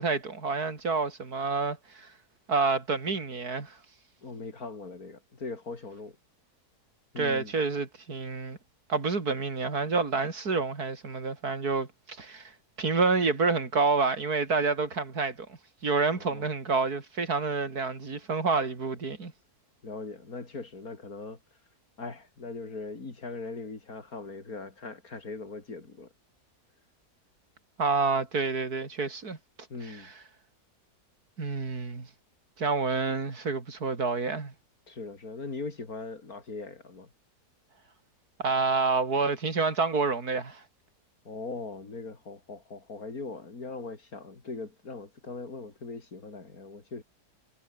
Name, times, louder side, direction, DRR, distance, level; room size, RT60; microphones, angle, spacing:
voice 1, 0.0-2.1 2.5-3.8 7.2-8.6 8.9-12.5 12.8-15.5 15.8-19.3 27.8-29.4 29.8-30.1 31.4-32.1 32.6-34.5 38.4-40.6, right 4 dB, 70° right, 3.7 m, -28 dB
voice 2, 4.2-6.2 7.1-7.5 16.1-16.5 19.8-21.4 22.0-26.1 29.7-30.1 34.9-37.1 41.2-47.0, left 3 dB, 65° left, 4.1 m, -40 dB
omnidirectional pair, 1.7 m